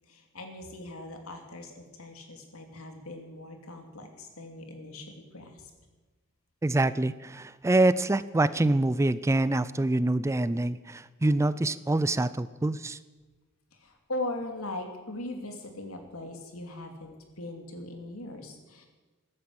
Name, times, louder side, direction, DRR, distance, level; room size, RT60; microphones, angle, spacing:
voice 1, 0.1-5.7 13.7-18.9, left 2 dB, 85° left, 4 dB, 2.8 m, -40 dB
voice 2, 6.6-13.0, right 2 dB, 15° right, 17 dB, 0.4 m, -25 dB
14.5 x 11.5 x 7.8 m, 1.2 s
head